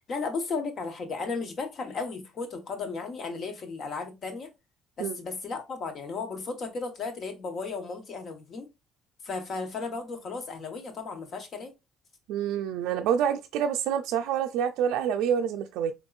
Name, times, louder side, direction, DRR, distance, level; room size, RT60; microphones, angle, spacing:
voice 1, 0.1-4.5 5.0-8.7 9.2-11.7, left 4 dB, 50° left, 1.3 m, -35 dB
voice 2, 12.3-15.9, right 8 dB, 85° right, 0.3 m, -27 dB
3.8 x 3.5 x 2.4 m
cardioid pair, 90°, 0 cm